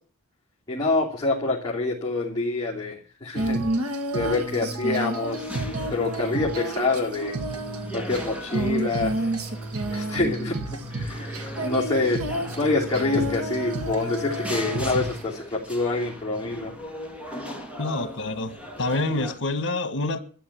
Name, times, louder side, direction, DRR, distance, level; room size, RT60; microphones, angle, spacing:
voice 1, 0.7-3.6 4.1-5.5 5.9-7.4 7.9-9.1 9.9-11.3 11.6-12.2 12.6-16.7, left 3 dB, 20° left, 2.9 m, -26 dB
Female singing, 3.4-15.2, right 1 dB, 85° right, 2.3 m, -30 dB
sound 1, 5.3-19.3, equal, 5° right, 2.7 m, -39 dB
voice 2, 17.8-20.2, left 2 dB, 55° left, 1.8 m, -27 dB
13.0 x 9.5 x 8.6 m
head